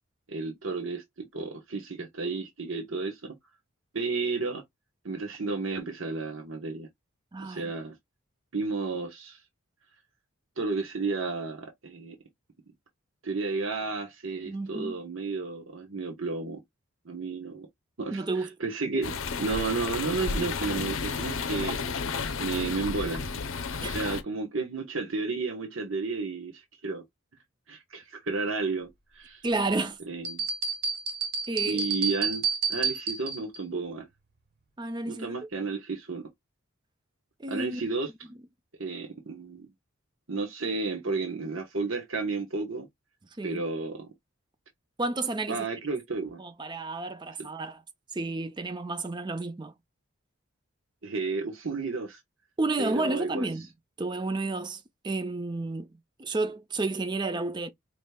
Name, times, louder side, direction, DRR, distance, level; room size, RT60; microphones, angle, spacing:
voice 1, 0.3-3.3 3.9-4.6 5.0-6.9 7.4-7.9 8.5-9.4 10.6-12.2 13.2-16.6 17.0-17.7 18.0-21.8 22.4-23.2 23.8-27.0 27.7-29.4 30.1-30.5 31.7-32.4 32.7-34.1 35.1-36.3 37.5-38.1 38.8-39.7 40.3-42.9 43.4-44.1 45.5-46.4 51.0-52.2 52.8-53.4, right 3 dB, 65° right, 1.1 m, -32 dB
voice 2, 7.3-7.7 14.5-15.0 18.1-18.5 23.8-23.9 29.4-30.0 31.5-31.8 34.8-35.3 37.4-37.8 43.4-43.6 45.0-45.7 46.4-47.8 48.1-49.7 52.6-53.7 54.0-57.7, right 2 dB, 20° right, 0.5 m, -31 dB
sound 1, 19.0-24.2, left 5 dB, 65° left, 0.6 m, -32 dB
sound 2, 30.2-33.6, right 5 dB, 45° right, 1.0 m, -30 dB
5.1 x 3.1 x 2.3 m
head